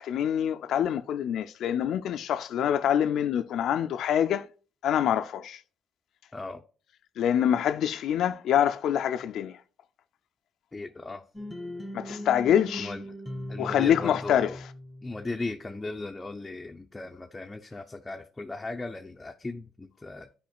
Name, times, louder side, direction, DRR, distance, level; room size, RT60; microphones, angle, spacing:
voice 1, 0.0-4.5 4.8-5.6 7.2-9.6 11.9-12.9 13.6-14.5, left 9 dB, 75° left, 0.4 m, -25 dB
voice 2, 10.7-11.2 12.8-13.0 13.5-14.6 15.0-20.3, left 2 dB, 20° left, 0.5 m, -37 dB
sound 1, 11.3-15.3, left 1 dB, ahead, 1.5 m, -39 dB
10.5 x 5.0 x 2.3 m
cardioid pair, 90°, 0 cm